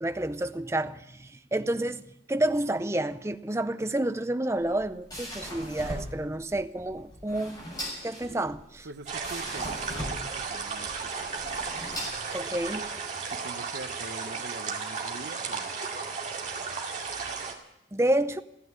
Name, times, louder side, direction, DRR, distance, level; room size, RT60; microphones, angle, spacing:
voice 1, 0.0-2.0 2.3-7.6 8.0-8.9 12.3-12.9 17.9-18.4, right 1 dB, 15° right, 0.5 m, -29 dB
sound 1, 4.5-12.9, equal, 20° left, 6.6 m, -40 dB
voice 2, 8.8-11.6 13.3-15.8, right 2 dB, 70° right, 0.9 m, -44 dB
sound 2, 9.1-17.5, right 5 dB, 40° right, 2.2 m, -34 dB
15.5 x 9.5 x 9.5 m
head